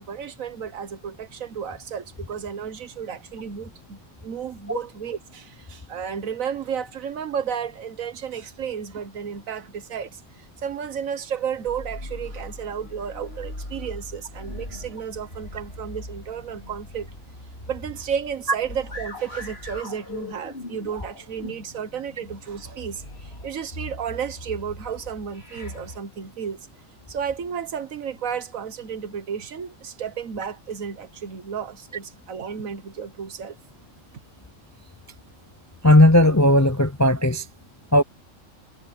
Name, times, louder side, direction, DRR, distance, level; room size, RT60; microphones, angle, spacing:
voice 1, 0.0-17.1 17.7-26.7 27.1-33.6, right 7 dB, 90° right, 1.6 m, -32 dB
sound 1, 11.7-26.0, left 1 dB, 50° left, 4.6 m, -40 dB
voice 2, 35.8-37.5 37.9-38.0, left 1 dB, 20° left, 0.4 m, -16 dB
omnidirectional pair, 1.4 m